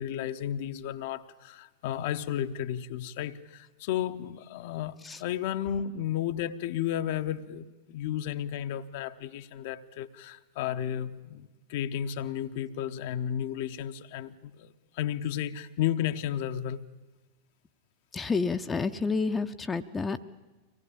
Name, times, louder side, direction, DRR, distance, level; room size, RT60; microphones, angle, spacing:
voice 1, 0.0-16.8, left 10 dB, 50° left, 0.9 m, -33 dB
voice 2, 18.1-20.2, left 4 dB, 15° left, 0.8 m, -29 dB
24.5 x 18.5 x 8.7 m
figure-of-eight pair, 90°, 0 cm